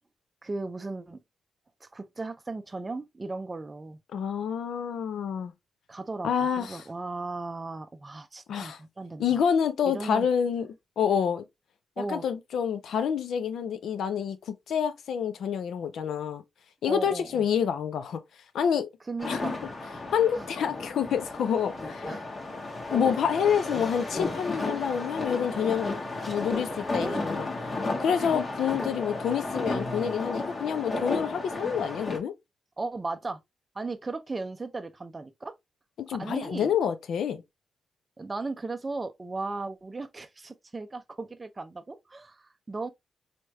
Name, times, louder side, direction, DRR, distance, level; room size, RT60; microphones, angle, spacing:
voice 1, 0.4-1.2 1.8-4.0 5.9-9.4 9.9-10.3 12.0-12.2 16.9-17.4 19.1-19.6 20.3-20.5 22.1-22.3 27.0-27.3 28.2-28.3 32.8-33.4 33.7-35.5 36.2-36.7 38.2-42.9, right 3 dB, 25° right, 0.4 m, -36 dB
voice 2, 4.1-5.5 6.2-6.8 8.5-8.8 9.2-10.7 11.0-11.4 12.1-16.4 16.8-18.2 18.5-18.9 19.3-19.4 20.1-22.2 22.9-26.0 26.3-27.5 28.0-32.3 36.0-37.4, left 7 dB, 80° left, 0.5 m, -28 dB
sound 1, 19.2-32.2, left 2 dB, 40° left, 1.1 m, -33 dB
4.2 x 3.2 x 2.2 m
cardioid pair, 95°, 0 cm